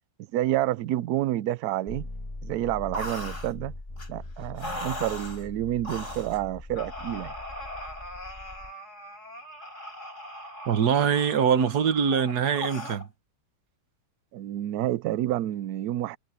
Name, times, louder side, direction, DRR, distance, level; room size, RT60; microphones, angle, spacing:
voice 1, 0.3-2.1 2.4-3.7 4.1-7.3 14.3-16.2, right 13 dB, 85° right, 0.8 m, -29 dB
sound 1, 1.9-8.7, left 2 dB, 20° left, 1.5 m, -41 dB
sound 2, 2.9-3.5 4.0-4.1 4.6-5.4 5.8-6.4 6.8-13.1, left 1 dB, 35° left, 5.9 m, -39 dB
voice 2, 10.7-13.1, right 7 dB, 55° right, 1.6 m, -23 dB
omnidirectional pair, 2.3 m